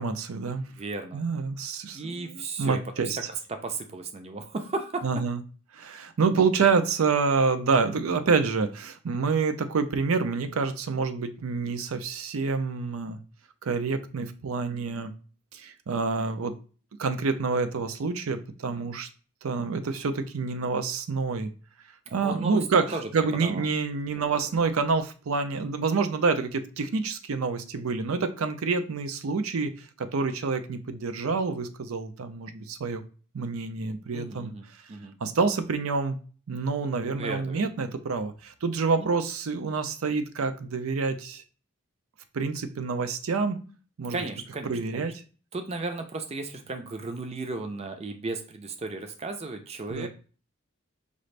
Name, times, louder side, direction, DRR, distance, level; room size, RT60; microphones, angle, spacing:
voice 1, 0.0-0.6 1.1-3.2 5.0-5.4 5.7-13.2 13.6-15.1 15.5-16.5 17.0-19.1 19.4-21.5 22.1-22.8 23.1-33.0 33.3-34.5 35.2-36.2 36.5-41.4 42.3-43.6 44.0-44.2 44.6-45.1 49.9-50.1, right 4 dB, 80° right, 9 dB, 0.5 m, -27 dB
voice 2, 0.7-1.2 1.9-5.0 22.1-23.1 23.4-23.7 24.2-24.4 34.1-35.1 37.2-37.6 38.9-39.1 44.1-45.1 45.5-50.1, right 3 dB, 30° right, 6 dB, 0.5 m, -35 dB
5.2 x 2.4 x 3.2 m, 0.38 s
head